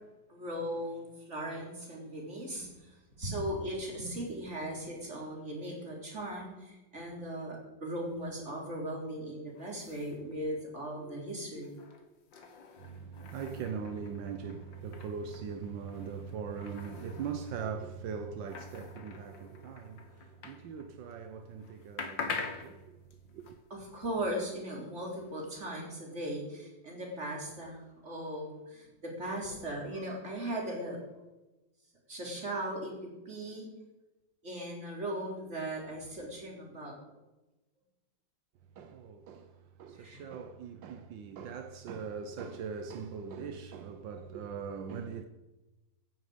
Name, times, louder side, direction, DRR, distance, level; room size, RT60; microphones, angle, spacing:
voice 1, 0.3-11.8 23.7-31.2 32.1-32.9 33.3-33.7 34.4-37.0 40.0-40.2, right 1 dB, 35° right, 4.3 m, -38 dB
sound 1, 9.5-21.2 21.5-25.6, left 4 dB, 80° left, 2.3 m, -46 dB
voice 2, 12.8-23.0 23.3-23.6 38.8-45.2, right 6 dB, 80° right, 1.6 m, -41 dB
16.5 x 10.5 x 5.1 m
omnidirectional pair, 2.0 m